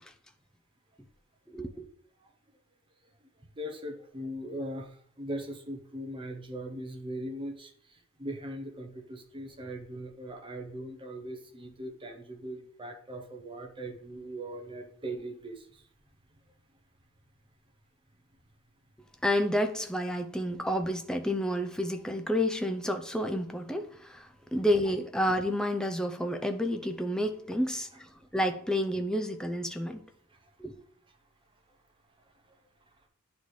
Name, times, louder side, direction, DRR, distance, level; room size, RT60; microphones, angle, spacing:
voice 1, 1.5-1.8 19.2-30.0 30.6-30.7, equal, 5° left, 0.5 m, -30 dB
voice 2, 3.6-15.8 30.3-30.5, right 1 dB, 25° right, 0.8 m, -40 dB
9.8 x 4.1 x 3.2 m
head